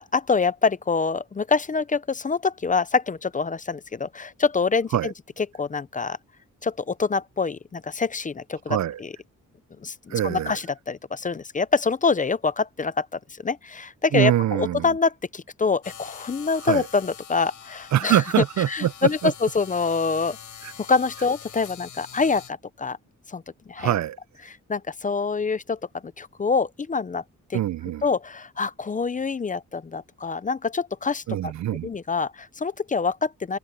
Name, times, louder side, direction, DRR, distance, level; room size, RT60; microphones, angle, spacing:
voice 1, 0.0-5.1 5.5-6.2 6.6-9.1 9.8-18.2 18.7-20.4 20.9-23.0 23.3-23.4 23.7-23.9 24.5-27.2 27.5-27.6 28.0-31.5 31.8-33.6, left 4 dB, 25° left, 0.5 m, -25 dB
voice 2, 8.7-9.0 10.1-10.6 14.1-14.9 16.6-16.9 17.9-19.3 20.6-20.7 23.8-24.2 27.5-28.0 31.3-31.9, right 12 dB, 60° right, 0.5 m, -24 dB
sound 1, 15.8-22.5, left 8 dB, 70° left, 7.9 m, -44 dB
open air
wide cardioid pair, 175°, 31 cm